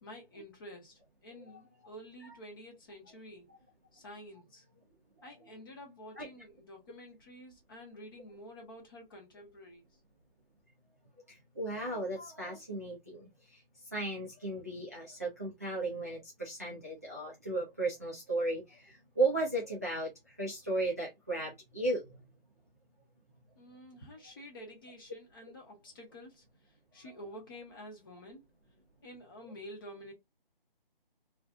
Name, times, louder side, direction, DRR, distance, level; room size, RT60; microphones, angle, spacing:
voice 1, 0.0-3.5 3.9-4.6 5.2-9.8 23.6-26.4 26.9-28.4 29.0-30.1, equal, 25° left, 0.8 m, -50 dB
voice 2, 11.3-13.6 13.9-22.1, right 2 dB, 20° right, 0.4 m, -35 dB
2.5 x 2.4 x 3.1 m
figure-of-eight pair, 155°, 29 cm